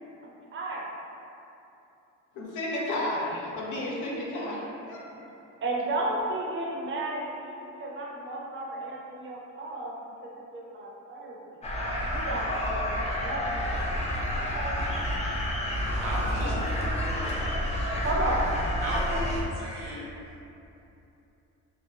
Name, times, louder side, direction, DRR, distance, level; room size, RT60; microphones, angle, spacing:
voice 1, 0.2-0.8 5.6-9.9 10.5-11.4 12.1-13.4 14.4-14.8 16.4-16.5 18.0-18.5, right 2 dB, 40° right, -3 dB, 0.6 m, -33 dB
voice 2, 2.3-5.3, left 1 dB, 80° left, -4 dB, 0.6 m, -32 dB
sound 1, 11.6-19.4, left 1 dB, 20° left, 0.4 m, -29 dB
voice 3, 16.0-17.4 18.8-19.2 19.5-20.1, equal, 75° right, -7 dB, 0.9 m, -35 dB
2.8 x 2.0 x 2.7 m, 2.8 s
cardioid pair, 90°, 30 cm